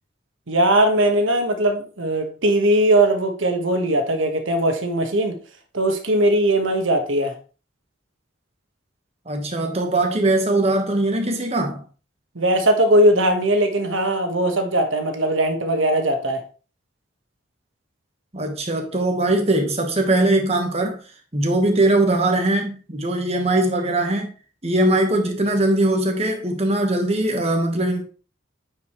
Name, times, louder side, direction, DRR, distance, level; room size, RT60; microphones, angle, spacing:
voice 1, 0.5-5.4 5.7-7.3 12.3-16.4, right 1 dB, 80° right, 1.4 m, -19 dB
voice 2, 9.3-11.8 18.3-21.0 21.3-24.3 24.6-28.0, right 2 dB, 30° right, 1.3 m, -21 dB
9.3 x 5.0 x 3.1 m
head